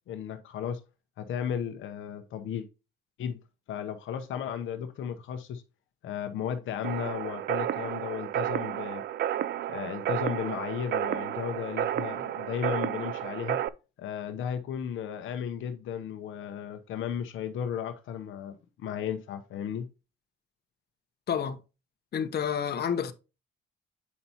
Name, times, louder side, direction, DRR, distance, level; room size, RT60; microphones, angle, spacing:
voice 1, 0.1-0.8 1.2-2.7 3.2-3.4 3.7-5.6 6.0-9.0 9.7-13.6 14.0-19.9, left 8 dB, 80° left, 0.8 m, -35 dB
sound 1, 6.8-13.7, right 11 dB, 60° right, 0.5 m, -31 dB
voice 2, 22.1-23.1, left 8 dB, 55° left, 1.0 m, -29 dB
8.5 x 5.4 x 2.8 m
cardioid pair, 90°, 20 cm